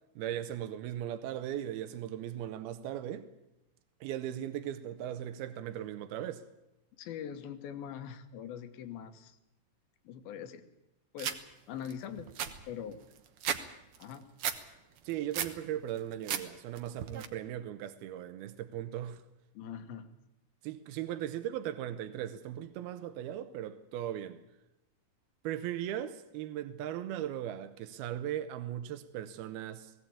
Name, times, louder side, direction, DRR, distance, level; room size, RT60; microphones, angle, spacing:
voice 1, 0.2-3.3 4.0-6.5 15.0-19.2 20.6-24.4 25.4-29.9, right 11 dB, 90° right, 2.8 m, -38 dB
voice 2, 7.0-9.4 10.0-10.6 11.1-11.4 11.7-12.3 12.7-13.0 14.0-14.3 19.5-20.1, left 8 dB, 75° left, 3.0 m, -42 dB
sound 1, 11.2-11.4 11.9-12.0 12.2-13.6 13.9-14.6 15.0-15.6 16.0-16.4 16.8-17.3, right 8 dB, 75° right, 1.3 m, -34 dB
19.0 x 16.5 x 8.6 m
omnidirectional pair, 4.3 m